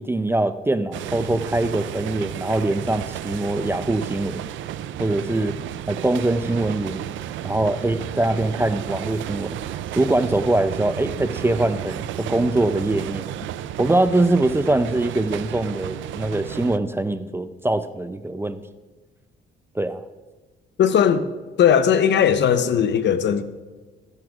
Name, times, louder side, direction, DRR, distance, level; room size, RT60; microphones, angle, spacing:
voice 1, 0.0-4.4 5.0-5.5 5.9-7.0 7.4-9.6 9.9-13.3 13.8-18.6 19.8-20.0, right 2 dB, 10° right, 0.4 m, -23 dB
sound 1, 0.9-16.8, right 11 dB, 75° right, 0.4 m, -32 dB
voice 2, 20.8-21.2 21.6-23.4, left 8 dB, 65° left, 0.7 m, -18 dB
14.5 x 11.0 x 2.4 m
cardioid pair, 90°, 20 cm